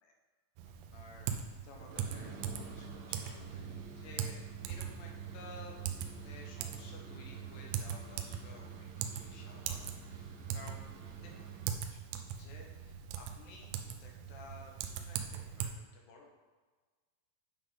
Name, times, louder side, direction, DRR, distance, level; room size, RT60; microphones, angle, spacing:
Typing, 0.6-15.7, right 8 dB, 90° right, 3.2 m, -41 dB
voice 1, 0.9-3.7 3.9-4.4 4.7-5.8 6.2-10.9 11.2-12.0 12.3-16.3, left 3 dB, 70° left, 0 dB, 2.8 m, -55 dB
sound 1, 1.8-11.8, right 6 dB, 70° right, 2.7 m, -49 dB
9.3 x 3.7 x 5.5 m, 1.4 s
omnidirectional pair, 5.6 m